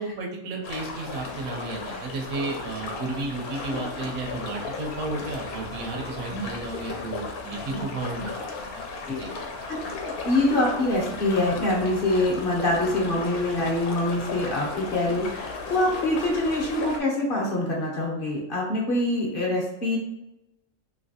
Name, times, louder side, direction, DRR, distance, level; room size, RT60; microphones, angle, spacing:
voice 1, 0.0-8.3 9.1-9.3, right 3 dB, 70° right, 2 dB, 1.1 m, -33 dB
sound 1, 0.6-17.0, left 3 dB, 90° left, 1.1 m, -35 dB
voice 2, 10.0-20.0, left 1 dB, 45° left, -2 dB, 0.8 m, -25 dB
3.2 x 2.8 x 2.7 m, 0.90 s
omnidirectional pair, 1.5 m